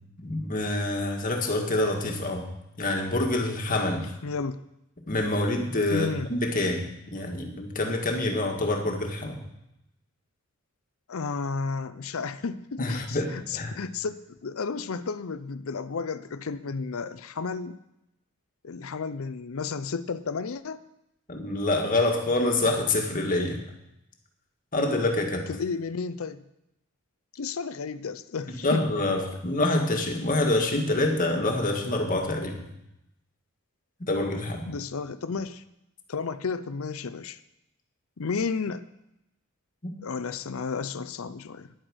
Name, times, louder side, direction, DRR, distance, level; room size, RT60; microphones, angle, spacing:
voice 1, 0.2-2.5 2.8-4.1 5.1-9.4 12.8-13.8 21.3-23.6 24.7-25.5 28.6-32.7 34.0-34.6 39.8-39.9, left 2 dB, 40° left, 3 dB, 1.8 m, -26 dB
voice 2, 4.2-4.6 5.9-6.3 11.1-17.8 18.6-20.8 25.5-26.4 27.4-29.2 34.7-35.6 36.1-37.4 38.2-38.8 40.0-41.7, left 4 dB, 65° left, 13 dB, 0.6 m, -32 dB
10.5 x 9.0 x 6.3 m, 0.85 s
head